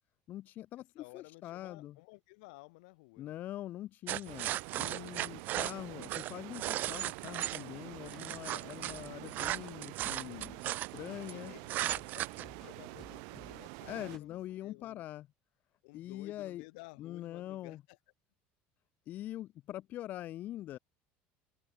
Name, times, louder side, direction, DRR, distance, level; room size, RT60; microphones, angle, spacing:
voice 1, 0.3-2.0 3.2-11.5 13.9-15.3 15.9-16.6 17.0-17.8 19.1-20.8, left 13 dB, 45° left, 4.7 m, -43 dB
voice 2, 1.0-3.3 11.3-15.0 15.8-17.8, left 27 dB, 85° left, 7.5 m, -54 dB
sound 1, 4.1-7.6 8.1-11.3 11.7-12.4, right 14 dB, 45° right, 0.5 m, -36 dB
sound 2, 4.3-14.2, right 40 dB or more, 75° right, 3.1 m, -47 dB
sound 3, 7.9-14.6, left 3 dB, 10° left, 6.7 m, -60 dB
open air
cardioid pair, 155°, 4 cm